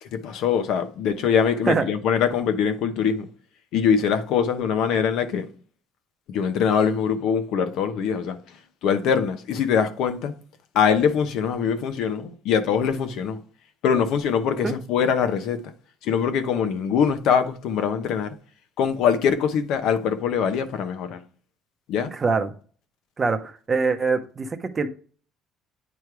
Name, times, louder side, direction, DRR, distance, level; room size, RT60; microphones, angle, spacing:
voice 1, 0.0-3.3 3.7-5.5 6.3-8.4 8.8-10.4 10.7-13.4 13.8-15.7 16.0-18.3 18.8-21.2 21.9-22.1, left 7 dB, 65° left, 0.8 m, -23 dB
voice 2, 22.1-22.5 23.2-24.9, right 4 dB, 20° right, 0.7 m, -23 dB
9.3 x 3.2 x 4.7 m
cardioid pair, 150°, 0 cm